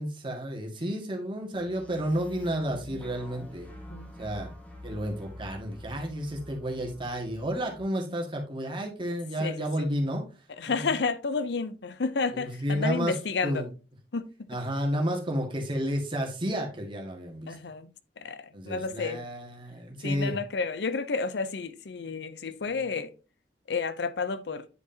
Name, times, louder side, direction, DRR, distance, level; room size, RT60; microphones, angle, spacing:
voice 1, 0.0-3.7 4.2-4.5 4.8-10.2 10.6-10.9 12.3-13.2 13.4-13.7 14.5-17.6 18.5-20.3, equal, 30° right, 1.9 m, -31 dB
sound 1, 1.6-7.8, left 1 dB, 10° left, 1.6 m, -46 dB
voice 2, 9.4-9.9 10.6-13.7 14.1-14.2 17.5-19.3 20.0-23.1 23.7-24.7, left 4 dB, 70° left, 0.6 m, -31 dB
9.7 x 4.9 x 2.8 m
head